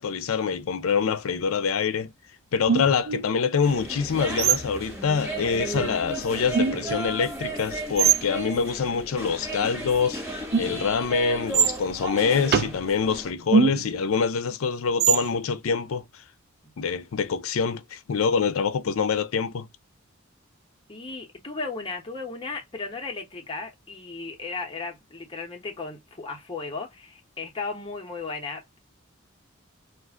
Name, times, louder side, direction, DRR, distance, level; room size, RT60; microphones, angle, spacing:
voice 1, 0.0-2.1 2.5-10.2 10.6-16.0 16.8-19.7, left 6 dB, 80° left, 0.5 m, -25 dB
sound 1, 2.7-3.2 4.4-4.8 5.8-5.9 6.5-7.0 8.0-8.2 10.5-10.9 11.5-11.8 12.5-12.8 13.5-14.0 15.0-15.3, right 6 dB, 50° right, 0.3 m, -22 dB
sound 2, 3.6-13.3, right 2 dB, 15° right, 1.3 m, -35 dB
voice 2, 8.0-8.4 16.6-16.7 20.9-28.8, left 4 dB, 25° left, 0.9 m, -35 dB
2.5 x 2.4 x 3.5 m
head